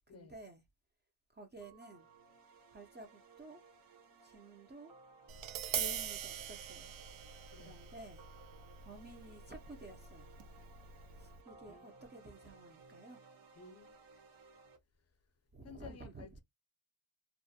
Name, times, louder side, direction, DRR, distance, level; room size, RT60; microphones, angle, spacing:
voice 1, 0.1-0.6 1.3-2.1 2.7-3.6 4.2-4.9 5.7-7.0 7.5-8.2 8.8-10.3 11.1-13.2 15.5-16.4, right 2 dB, 25° right, 0.4 m, -53 dB
sound 1, 1.6-14.8, right 4 dB, 50° right, 0.8 m, -60 dB
Tap, 5.3-11.4, right 9 dB, 85° right, 0.5 m, -43 dB
voice 2, 13.5-14.1 15.6-16.4, left 5 dB, 35° left, 0.5 m, -54 dB
2.4 x 2.1 x 2.6 m
wide cardioid pair, 125°, 46 cm